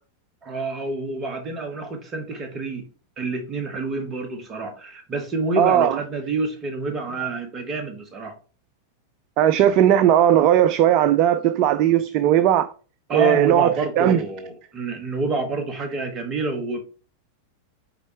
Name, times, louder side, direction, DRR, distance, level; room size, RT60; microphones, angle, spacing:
voice 1, 0.4-2.9 3.2-8.3 13.1-16.8, right 2 dB, 25° right, 1.7 m, -28 dB
voice 2, 5.6-6.0 9.4-12.7 13.1-14.2, right 11 dB, 40° right, 0.4 m, -17 dB
6.7 x 4.2 x 4.5 m
figure-of-eight pair, 90°, 0 cm